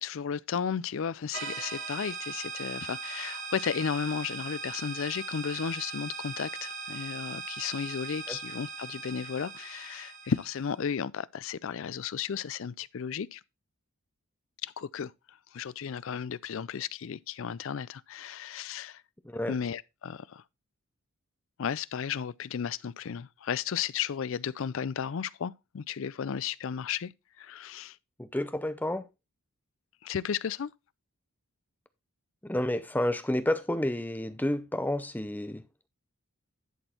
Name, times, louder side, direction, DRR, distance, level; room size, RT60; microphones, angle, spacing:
voice 1, 0.0-13.4 14.6-15.1 15.5-19.0 19.5-20.4 21.6-27.1 27.4-28.0 30.0-30.7, left 7 dB, 60° left, 0.4 m, -34 dB
sound 1, 1.3-10.7, right 4 dB, 55° right, 2.3 m, -39 dB
voice 2, 28.2-29.0 32.4-35.6, left 1 dB, 10° left, 0.5 m, -30 dB
11.0 x 4.4 x 4.3 m
head